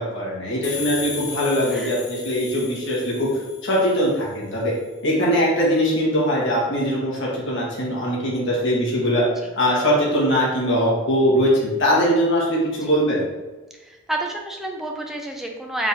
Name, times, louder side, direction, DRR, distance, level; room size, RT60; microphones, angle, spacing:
voice 1, 0.0-3.3 3.6-4.7 5.0-9.2 9.6-13.2, equal, 60° left, -5 dB, 1.4 m, -21 dB
sound 1, 0.6-4.2, left 6 dB, 35° left, 0.6 m, -35 dB
voice 2, 13.7-15.9, right 1 dB, ahead, 1 dB, 0.4 m, -30 dB
4.1 x 3.9 x 2.7 m, 1.2 s
head